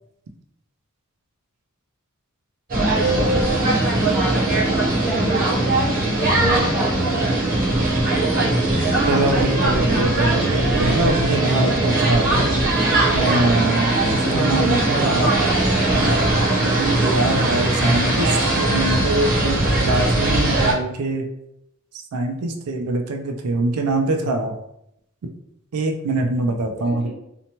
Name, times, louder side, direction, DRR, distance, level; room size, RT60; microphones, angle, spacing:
sound 1, 2.7-20.7, right 2 dB, 40° right, 0.7 m, -20 dB
voice 1, 2.9-3.7 4.1-5.6 6.2-7.4 26.8-27.1, right 1 dB, 5° right, -5 dB, 0.7 m, -27 dB
voice 2, 9.1-12.4 13.1-15.4 16.6-21.3 22.1-24.6 25.7-27.1, right 2 dB, 85° right, 3 dB, 0.4 m, -23 dB
2.8 x 2.1 x 2.8 m, 0.79 s
head